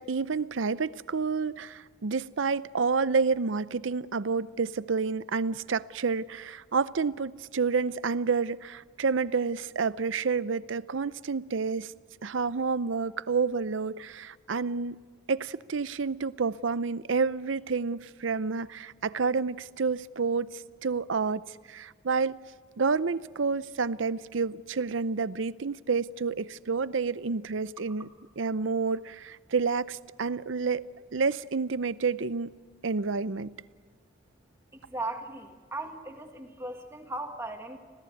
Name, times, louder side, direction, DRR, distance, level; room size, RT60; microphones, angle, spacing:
voice 1, 0.0-11.9 12.2-15.0 15.3-20.5 20.8-22.4 22.8-28.1 28.4-30.9 31.1-32.5 32.8-33.5, right 5 dB, 75° right, 0.6 m, -29 dB
voice 2, 34.7-37.8, right 2 dB, 10° right, 1.7 m, -37 dB
26.5 x 17.0 x 9.3 m
head